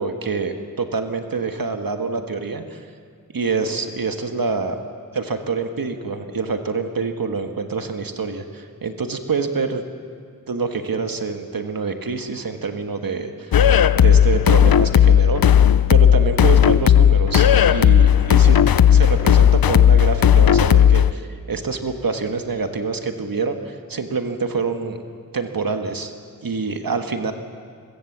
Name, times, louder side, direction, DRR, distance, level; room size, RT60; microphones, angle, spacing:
voice 1, 0.0-2.8 3.3-4.8 5.1-9.8 10.5-13.7 13.9-25.0 25.3-26.1 26.4-27.3, right 4 dB, 80° right, 6 dB, 1.5 m, -26 dB
sound 1, 13.5-21.1, left 9 dB, 85° left, 0.6 m, -14 dB
23.5 x 22.0 x 7.3 m, 2.1 s
wide cardioid pair, 60°, 34 cm